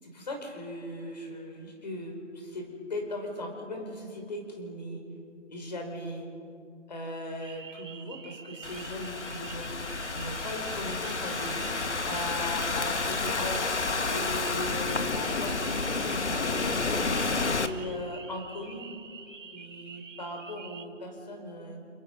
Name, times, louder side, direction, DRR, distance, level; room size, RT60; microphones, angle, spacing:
voice 1, 0.0-5.0 5.5-6.3 6.9-11.7 12.1-16.8 17.6-18.9 19.5-21.9, left 1 dB, 35° left, 2 dB, 5.5 m, -38 dB
sound 1, 7.4-20.8, right 5 dB, 90° right, 2.9 m, -47 dB
Thunderstorm / Rain, 8.6-17.7, left 3 dB, 65° left, 1.9 m, -30 dB
sound 2, 9.9-14.7, left 1 dB, 85° left, 6.9 m, -46 dB
30.0 x 29.5 x 5.6 m, 2.4 s
figure-of-eight pair, 175°, 37 cm